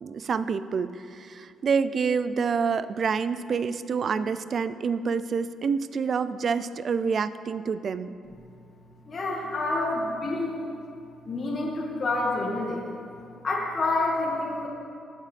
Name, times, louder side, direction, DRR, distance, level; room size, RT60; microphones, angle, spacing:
voice 1, 0.0-8.1, right 5 dB, 50° right, 13 dB, 0.4 m, -27 dB
voice 2, 9.1-10.6 11.3-12.8 13.4-14.7, left 2 dB, 40° left, -5 dB, 1.9 m, -28 dB
17.5 x 7.5 x 3.4 m, 2.4 s
cardioid pair, 90°, 0 cm